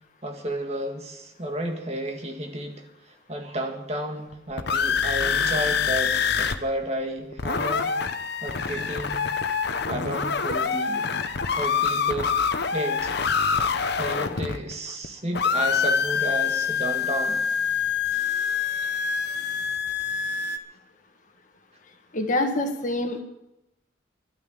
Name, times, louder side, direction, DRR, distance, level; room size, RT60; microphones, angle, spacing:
voice 1, 0.2-7.9 8.4-9.3 9.9-11.1 11.6-12.4 12.7-13.1 14.0-17.4, right 1 dB, 35° right, 4 dB, 1.9 m, -32 dB
sound 1, 4.3-6.6 6.8-6.9 7.2-15.1 15.3-20.6, left 6 dB, 55° left, 0.9 m, -25 dB
voice 2, 22.1-23.2, left 1 dB, 40° left, 5 dB, 1.8 m, -25 dB
12.0 x 9.4 x 8.9 m, 0.88 s
head